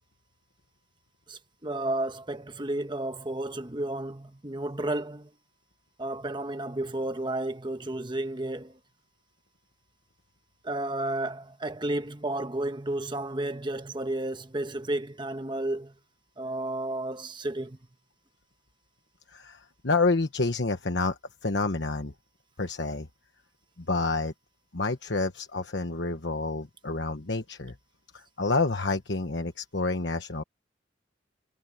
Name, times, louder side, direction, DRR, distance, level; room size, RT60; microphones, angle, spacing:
voice 1, 1.3-5.3 6.0-8.8 10.6-15.9 16.4-17.8, right 1 dB, 25° right, 1.2 m, -32 dB
voice 2, 19.3-22.1 22.6-23.1 23.9-24.3 24.7-27.7 28.1-30.4, left 3 dB, 60° left, 1.2 m, -28 dB
head